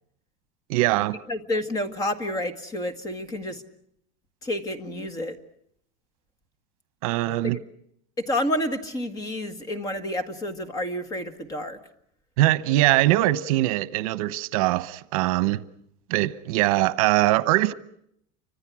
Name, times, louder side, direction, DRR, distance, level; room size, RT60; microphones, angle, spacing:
voice 1, 0.7-1.2 7.0-7.6 12.4-15.6 16.1-17.7, right 17 dB, 70° right, 1.0 m, -22 dB
voice 2, 1.3-3.6 4.4-5.4 7.4-7.6 8.2-11.8, left 1 dB, 20° left, 1.8 m, -29 dB
30.0 x 25.5 x 6.2 m
cardioid pair, 175°, 19 cm